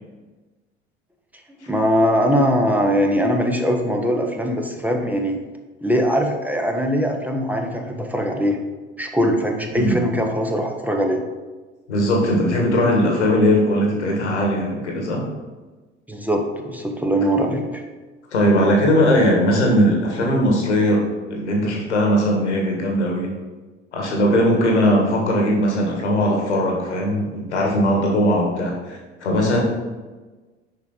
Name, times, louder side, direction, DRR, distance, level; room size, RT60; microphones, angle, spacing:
voice 1, 1.7-5.4 5.8-8.6 9.0-11.2 16.1-17.8, equal, 5° right, 2 dB, 0.9 m, -21 dB
voice 2, 11.9-15.2 18.3-21.0 21.3-23.3 23.9-29.6, equal, 80° left, 0 dB, 1.6 m, -19 dB
6.9 x 5.1 x 4.1 m, 1.3 s
figure-of-eight pair, 70°, 34 cm